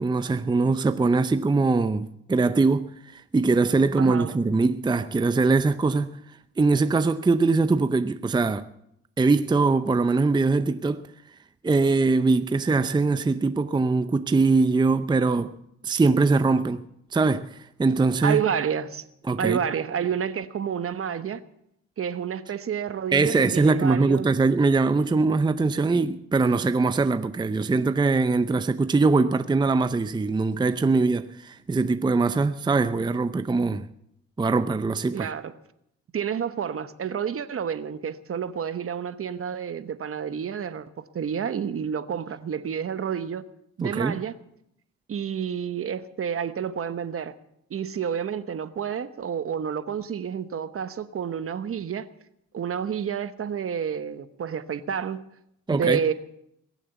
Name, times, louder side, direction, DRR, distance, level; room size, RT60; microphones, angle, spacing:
voice 1, 0.0-6.2 6.6-8.7 9.2-11.1 11.6-15.5 15.8-16.8 17.1-18.4 19.3-19.6 23.1-33.9 34.4-35.3 43.8-44.2 55.7-56.0, right 3 dB, 15° right, 0.6 m, -22 dB
voice 2, 4.0-4.3 18.2-19.0 19.4-21.4 22.0-24.3 35.1-35.5 36.1-40.9 41.1-43.4 43.8-44.3 45.1-47.3 47.7-52.1 52.5-55.2 55.7-56.1, right 8 dB, 45° right, 1.1 m, -29 dB
22.0 x 7.3 x 8.2 m
cardioid pair, 90°, 30 cm